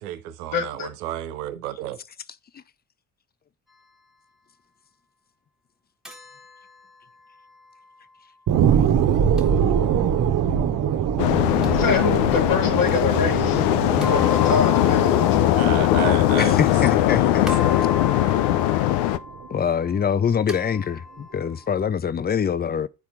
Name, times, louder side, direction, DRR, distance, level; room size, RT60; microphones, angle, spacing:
voice 1, 0.0-2.0 15.5-17.9, right 12 dB, 80° right, 0.8 m, -32 dB
voice 2, 0.5-0.9 11.7-15.4, left 5 dB, 50° left, 2.1 m, -26 dB
sound 1, 6.1-8.2 9.4-10.4 11.6-12.8 14.0-17.1 17.5-21.9, left 3 dB, ahead, 1.5 m, -38 dB
sound 2, 8.5-19.5 19.9-20.0, right 8 dB, 50° right, 0.9 m, -24 dB
sound 3, 11.2-19.2, left 14 dB, 70° left, 0.6 m, -20 dB
voice 3, 16.4-17.4 19.5-22.9, left 7 dB, 25° left, 0.5 m, -24 dB
9.8 x 4.3 x 3.6 m
hypercardioid pair, 50°, 43 cm